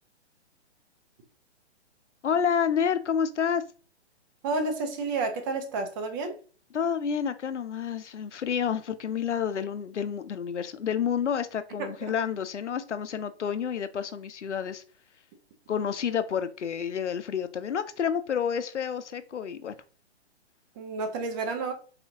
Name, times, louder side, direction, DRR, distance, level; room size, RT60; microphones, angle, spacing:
voice 1, 2.2-3.6 6.7-14.8 15.7-19.7, left 7 dB, 90° left, 12 dB, 0.6 m, -29 dB
voice 2, 4.4-6.4 11.8-11.9 20.8-21.7, right 3 dB, 20° right, 6 dB, 0.5 m, -30 dB
4.0 x 2.8 x 2.7 m, 0.39 s
hypercardioid pair, 135°, 34 cm